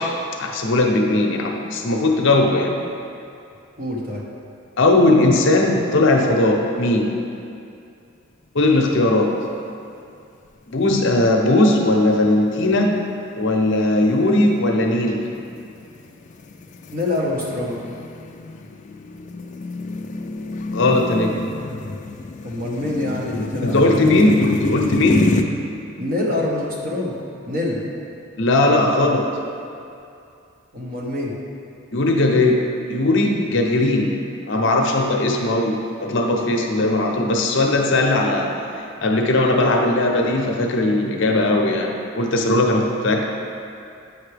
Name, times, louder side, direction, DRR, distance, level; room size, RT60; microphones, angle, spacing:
voice 1, 0.0-2.7 4.8-7.1 8.5-9.4 10.7-13.0 13.3-15.2 20.7-21.4 23.6-25.3 28.4-29.3 31.9-32.6 32.9-34.2 34.5-38.5 39.0-43.2, left 2 dB, 60° left, 1 dB, 0.7 m, -18 dB
voice 2, 3.8-4.2 16.9-17.8 22.4-24.1 26.0-27.1 27.5-27.8 30.7-31.4, left 2 dB, 45° right, -3 dB, 1.1 m, -25 dB
sound 1, 9.0-9.5 9.9-10.0 10.7-11.2 11.7-11.9 12.6-25.4, left 3 dB, 35° left, 0.3 m, -28 dB
8.4 x 5.8 x 3.3 m, 2.5 s
head